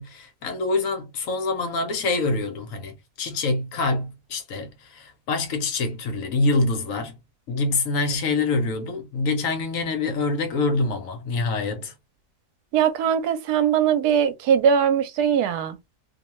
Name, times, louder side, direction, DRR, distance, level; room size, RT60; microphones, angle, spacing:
voice 1, 0.0-7.2 7.5-11.9, left 3 dB, 65° left, 1.0 m, -25 dB
voice 2, 12.7-15.8, right 8 dB, 80° right, 1.1 m, -21 dB
2.7 x 2.2 x 2.9 m
omnidirectional pair, 1.7 m